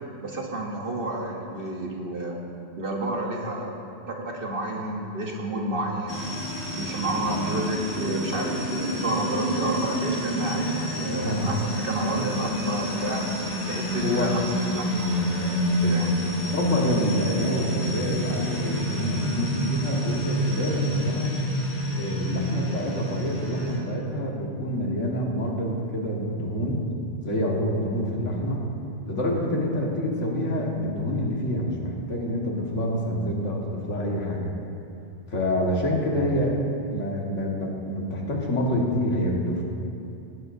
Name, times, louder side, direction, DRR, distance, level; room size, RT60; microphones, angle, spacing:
voice 1, 0.2-2.4 2.8-3.8 4.1-6.3 6.7-13.2 13.7-16.1, right 1 dB, 50° right, -1 dB, 1.2 m, -30 dB
sound 1, 6.1-23.8, equal, 65° left, 2.8 m, -28 dB
voice 2, 11.1-11.5 14.0-14.4 16.4-21.3 21.9-26.8 27.2-28.6 29.1-34.5 35.3-36.6 36.9-39.6, equal, 85° left, -2 dB, 2.1 m, -27 dB
19.5 x 11.0 x 2.7 m, 2.7 s
omnidirectional pair, 1.2 m